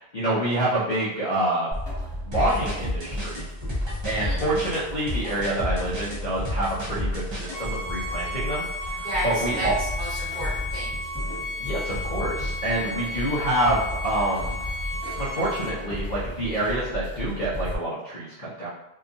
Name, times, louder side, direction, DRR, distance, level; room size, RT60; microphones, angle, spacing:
voice 1, 0.0-1.7 2.3-3.5 4.0-9.7 11.6-14.6 15.2-18.7, right 1 dB, 50° left, -8 dB, 0.7 m, -27 dB
sound 1, 1.7-17.8, left 1 dB, 10° right, 1.4 m, -34 dB
sound 2, 2.3-7.6, left 1 dB, 30° right, 0.6 m, -31 dB
voice 2, 4.1-4.5 9.0-11.0, right 1 dB, 45° right, -10 dB, 1.1 m, -32 dB
Bowed string instrument, 7.5-15.8, left 1 dB, 80° left, 1.0 m, -34 dB
2.8 x 2.3 x 2.5 m, 0.88 s
omnidirectional pair, 1.1 m